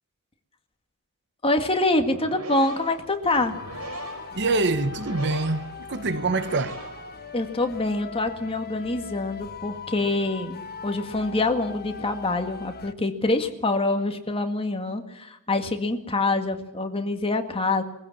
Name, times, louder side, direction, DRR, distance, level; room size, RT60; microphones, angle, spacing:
voice 1, 1.4-3.6 7.3-17.8, left 2 dB, 25° left, 1.9 m, -25 dB
sound 1, 1.9-7.6, right 2 dB, 80° right, 5.2 m, -40 dB
sound 2, 3.3-12.9, left 5 dB, 45° left, 1.1 m, -40 dB
voice 2, 4.3-6.8, right 3 dB, 55° right, 1.0 m, -25 dB
22.5 x 16.0 x 7.2 m
head